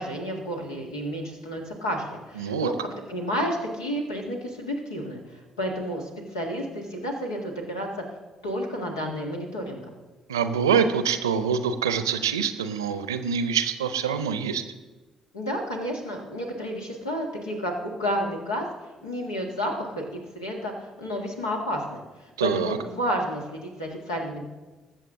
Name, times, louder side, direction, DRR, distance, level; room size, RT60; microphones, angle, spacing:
voice 1, 0.0-2.7 3.1-7.9 8.4-9.8 15.3-18.6 19.0-20.1 20.4-24.4, equal, 80° left, 0 dB, 1.8 m, -31 dB
voice 2, 2.4-2.7 10.3-14.6 22.4-22.8, right 7 dB, 80° right, 11 dB, 0.6 m, -25 dB
20.5 x 7.7 x 3.7 m, 1.2 s
figure-of-eight pair, 45°, 2 cm